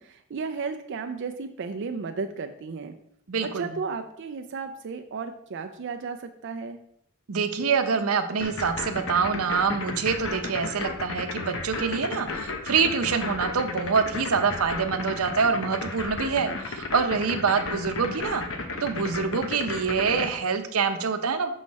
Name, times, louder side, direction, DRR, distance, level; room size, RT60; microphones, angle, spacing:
voice 1, 0.0-2.9 3.4-6.8, right 4 dB, 55° right, 6 dB, 0.4 m, -34 dB
voice 2, 3.3-3.7 7.3-18.4 18.8-21.5, right 5 dB, 90° right, 8 dB, 0.7 m, -25 dB
sound 1, 8.4-20.3, left 3 dB, 65° left, 0.9 m, -33 dB
6.4 x 5.4 x 4.1 m, 0.72 s
head